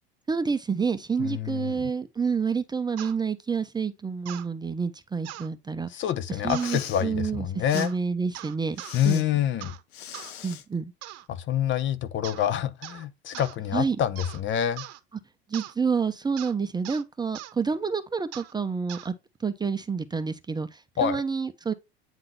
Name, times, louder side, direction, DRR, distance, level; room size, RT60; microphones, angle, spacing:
voice 1, 0.3-6.0 6.4-9.2 10.4-10.9 13.7-14.0 15.5-19.1 19.4-21.7, right 5 dB, 15° right, 0.7 m, -28 dB
voice 2, 1.2-1.9 5.9-7.9 8.9-9.7 11.3-14.8 21.0-21.2, left 10 dB, 35° left, 0.8 m, -27 dB
sound 1, 3.0-3.2 4.3-4.5 5.2-5.5 6.5-6.8 7.8-8.0 8.3-9.0 9.6-9.8 10.1-10.3 11.0-11.3 12.2-12.5 12.8-13.0 13.3-13.6 14.2-14.4 14.8-15.0 15.5-15.7 16.4-16.5 16.8-17.0 17.3-17.5 18.3-18.5 18.9-19.1, right 14 dB, 50° right, 0.9 m, -41 dB
Respiratory sounds, 6.4-7.0 7.7-7.9 8.8-9.2 9.9-10.6, left 10 dB, 70° left, 1.0 m, -40 dB
9.0 x 3.8 x 3.1 m
hypercardioid pair, 85°, 32 cm